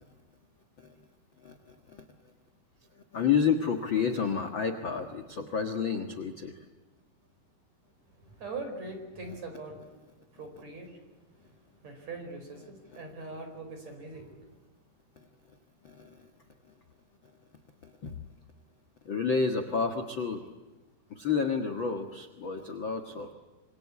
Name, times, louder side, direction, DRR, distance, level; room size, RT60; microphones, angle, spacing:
voice 1, 1.4-2.0 3.1-6.6 15.8-16.3 17.8-18.1 19.0-20.4 21.1-23.3, left 6 dB, 55° left, 5 dB, 1.4 m, -30 dB
voice 2, 8.2-11.0 11.3-14.5, right 3 dB, 45° right, 6 dB, 5.9 m, -42 dB
26.5 x 26.0 x 8.5 m, 1.2 s
omnidirectional pair, 4.7 m